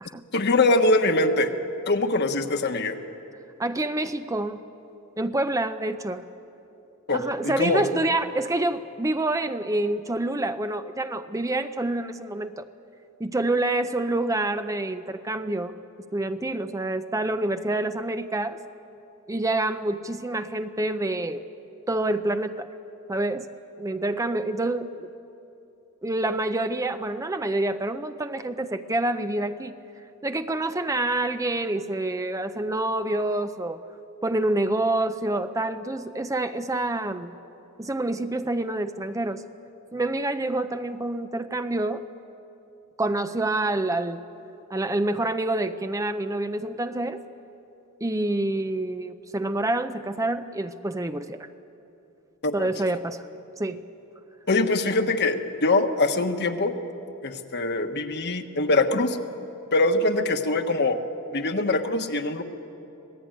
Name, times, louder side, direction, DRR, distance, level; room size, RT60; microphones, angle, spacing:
voice 1, 0.3-1.5 1.9-3.0 7.1-7.9 52.4-52.7 54.5-56.7 57.2-59.2 59.7-61.0 61.3-62.4, left 2 dB, 50° left, 6 dB, 1.4 m, -23 dB
voice 2, 3.6-4.6 5.2-6.2 7.1-12.7 13.2-15.7 16.1-18.6 19.3-21.4 21.9-22.7 23.1-23.5 23.8-25.1 26.0-29.8 30.2-33.8 34.2-37.3 37.8-39.4 39.9-42.0 43.0-44.2 44.7-47.2 48.0-51.5 52.5-53.2 53.6-53.8, right 2 dB, 15° right, 9 dB, 0.6 m, -27 dB
26.0 x 18.5 x 9.1 m, 2.9 s
head